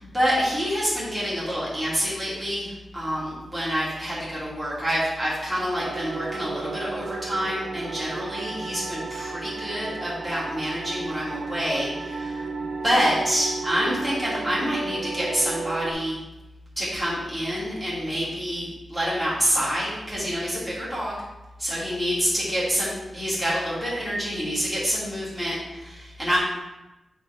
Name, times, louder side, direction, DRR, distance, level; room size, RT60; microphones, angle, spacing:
voice 1, 0.0-16.2 16.8-21.2 21.6-26.4, equal, ahead, -8 dB, 2.5 m, -27 dB
sound 1, 5.8-15.9, right 4 dB, 60° right, 0.7 m, -34 dB
9.0 x 4.7 x 3.4 m, 1.0 s
wide cardioid pair, 175°, 0 cm